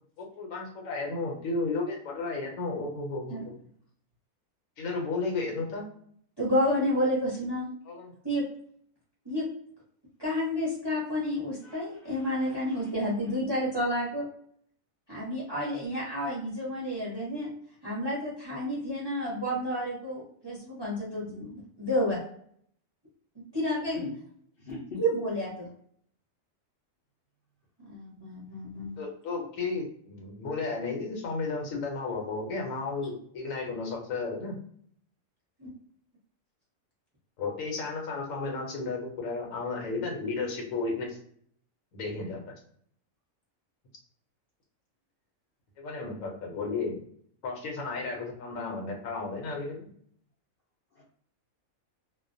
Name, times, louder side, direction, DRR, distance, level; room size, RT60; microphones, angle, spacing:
voice 1, 0.2-3.6 4.8-5.9 7.8-8.1 29.0-34.5 37.4-41.2 41.9-42.5 45.8-47.0 47.4-49.9, left 3 dB, 75° left, 2 dB, 1.0 m, -33 dB
voice 2, 6.4-7.7 8.2-8.4 9.2-9.5 10.2-14.3 15.1-17.5 17.8-22.2 23.5-24.0 25.0-25.7 27.8-29.0 35.6-35.7, equal, 25° right, -6 dB, 0.7 m, -30 dB
voice 3, 11.6-12.9 23.9-24.1 24.6-25.0 51.0-51.1, left 4 dB, 55° left, -5 dB, 0.6 m, -42 dB
2.4 x 2.1 x 2.5 m, 0.62 s
omnidirectional pair, 1.4 m